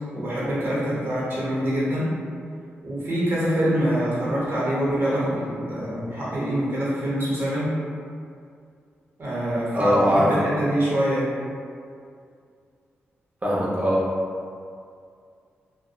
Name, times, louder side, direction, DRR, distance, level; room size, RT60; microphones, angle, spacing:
voice 1, 0.1-2.1 2.8-7.7 9.2-11.2, equal, 55° right, -8 dB, 1.0 m, -25 dB
voice 2, 9.7-10.3 13.4-14.0, equal, 30° right, -7 dB, 0.8 m, -20 dB
2.6 x 2.1 x 2.3 m, 2.3 s
cardioid pair, 65°, 5 cm